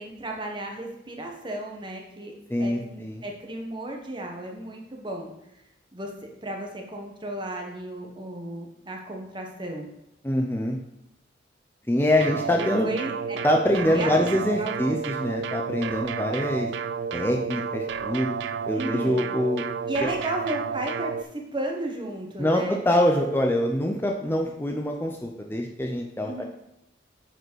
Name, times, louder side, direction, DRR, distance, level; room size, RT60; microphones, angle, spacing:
voice 1, 0.0-2.3 2.6-5.3 5.9-6.1 6.4-9.9 12.5-13.4 13.9-15.0 18.7-19.4 19.9-22.8 26.2-26.4, right 1 dB, 25° right, 1 dB, 1.4 m, -34 dB
voice 2, 2.5-3.2 10.2-10.8 11.9-12.9 13.4-16.7 17.1-18.3 18.7-19.6 22.4-26.4, left 1 dB, 10° left, 1 dB, 0.6 m, -24 dB
sound 1, 12.2-21.2, right 6 dB, 75° right, 0.4 m, -31 dB
7.8 x 5.0 x 6.3 m, 0.85 s
head